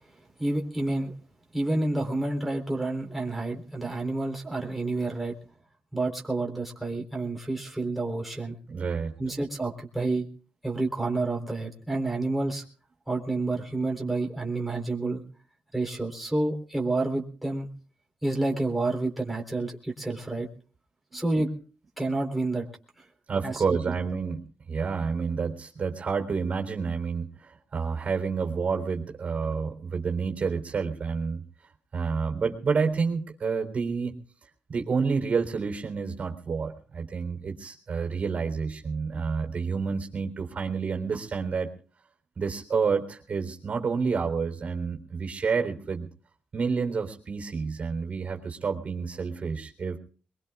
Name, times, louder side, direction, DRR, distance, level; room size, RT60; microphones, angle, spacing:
voice 1, 0.4-1.1 1.5-5.4 5.9-8.6 9.2-10.3 10.6-12.6 13.1-15.2 15.7-17.7 18.2-20.5 21.1-21.5 22.0-22.7 23.0-23.1 23.4-23.9, right 2 dB, 5° right, -1 dB, 3.8 m, -29 dB
voice 2, 8.7-9.4 21.1-21.2 23.3-24.4 24.7-31.4 31.9-34.1 34.7-41.7 42.4-46.1 46.5-50.0, right 5 dB, 45° right, 3 dB, 3.7 m, -29 dB
22.5 x 22.0 x 2.4 m, 0.40 s
cardioid pair, 90°, 3 cm